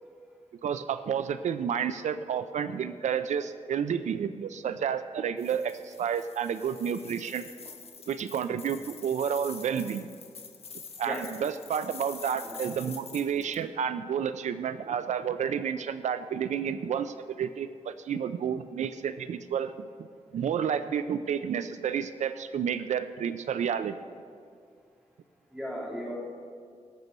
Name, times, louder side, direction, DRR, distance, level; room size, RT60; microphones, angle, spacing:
voice 1, 0.6-7.5 8.1-10.1 11.0-19.7 20.3-23.9, right 8 dB, 80° right, 11 dB, 0.4 m, -30 dB
sound 1, 5.4-13.6, left 5 dB, 55° left, 1.2 m, -46 dB
voice 2, 25.5-26.1, equal, 5° right, -4 dB, 2.9 m, -36 dB
18.5 x 6.8 x 5.4 m, 2.2 s
wide cardioid pair, 125°, 12 cm